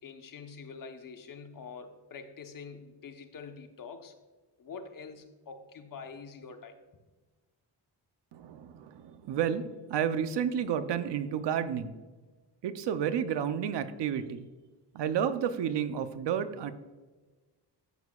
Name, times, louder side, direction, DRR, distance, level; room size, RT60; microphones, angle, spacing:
voice 1, 0.0-4.2 4.6-6.8, left 5 dB, 50° left, 6 dB, 1.1 m, -45 dB
voice 2, 8.3-11.9 12.6-14.4 14.9-16.7, right 8 dB, 75° right, 11 dB, 0.8 m, -31 dB
12.0 x 8.1 x 2.4 m, 1.2 s
cardioid pair, 105°, 42 cm